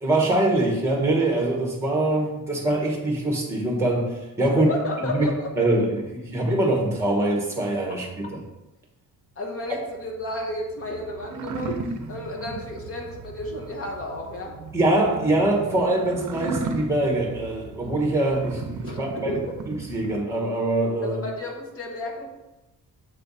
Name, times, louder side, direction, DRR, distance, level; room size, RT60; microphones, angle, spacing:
voice 1, 0.0-4.7 5.1-5.3 5.6-8.4 14.7-19.3 19.9-21.2, right 2 dB, 10° right, -1 dB, 1.2 m, -23 dB
voice 2, 4.5-5.5 9.4-14.6 18.8-19.5 21.0-22.3, left 2 dB, 40° left, 0 dB, 1.1 m, -32 dB
sound 1, 9.7-20.2, right 4 dB, 60° right, 0.6 m, -36 dB
7.1 x 3.4 x 4.0 m, 0.99 s
wide cardioid pair, 165°, 35 cm